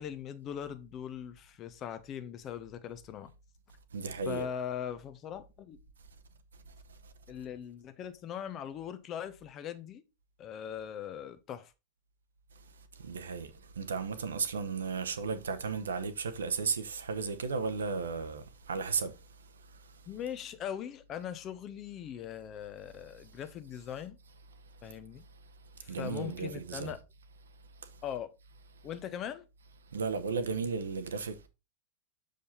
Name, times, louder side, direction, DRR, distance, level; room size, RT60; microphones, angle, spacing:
voice 1, 0.0-3.3 4.2-5.8 7.3-10.0 10.4-11.7 20.1-24.2 24.8-25.2 25.8-27.0 28.0-28.3 28.8-29.4, left 9 dB, 30° left, 0.8 m, -40 dB
voice 2, 3.9-4.5 6.9-7.1 12.9-20.0 24.8-24.9 25.9-26.9 27.8-28.0 29.9-31.5, right 5 dB, 70° right, 0.9 m, -35 dB
7.0 x 5.1 x 4.0 m
figure-of-eight pair, 90°, 0 cm